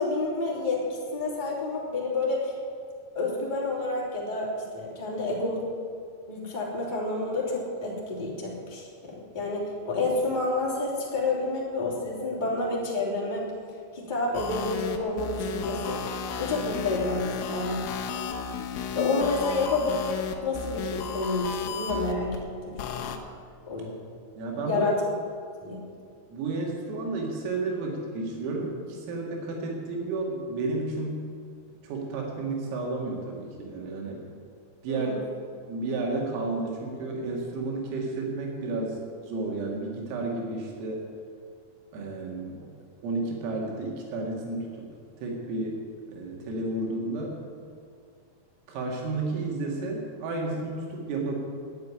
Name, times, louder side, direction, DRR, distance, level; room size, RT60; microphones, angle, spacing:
voice 1, 0.0-2.5 3.1-5.7 6.3-13.5 13.9-16.0 16.4-17.9 18.9-23.0 23.7-23.9 24.6-24.9 25.6-25.8 34.9-35.2, left 2 dB, 15° left, -5 dB, 1.9 m, -29 dB
sound 1, 14.3-22.4 22.8-23.2, left 6 dB, 85° left, 3.8 m, -34 dB
voice 2, 24.4-24.9 26.3-31.3 31.9-34.2 34.8-35.1 35.7-39.0 39.2-41.0 41.9-42.6 43.0-44.9 45.2-45.8 46.1-47.4 48.7-51.3, right 3 dB, 85° right, -1 dB, 4.9 m, -32 dB
10.5 x 9.5 x 9.7 m, 2.3 s
omnidirectional pair, 5.8 m